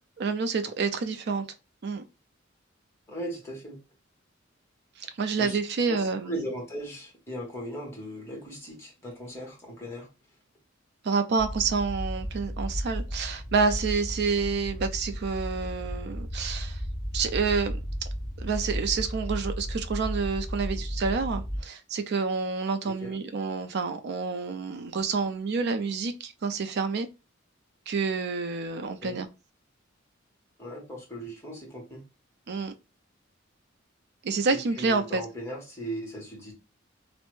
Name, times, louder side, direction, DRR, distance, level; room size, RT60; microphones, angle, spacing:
voice 1, 0.2-1.4 1.8-2.0 5.0-6.4 11.0-16.8 17.1-17.8 18.4-27.1 27.9-29.3 32.5-32.7 34.2-35.2, right 4 dB, 55° right, 0.4 m, -28 dB
voice 2, 3.1-3.8 5.4-5.6 5.9-10.1 20.7-20.8 22.8-23.2 29.0-29.2 30.6-32.0 34.5-36.5, equal, 15° left, 1.1 m, -38 dB
sound 1, 11.4-21.6, equal, 5° right, 1.3 m, -34 dB
3.2 x 2.1 x 3.0 m
head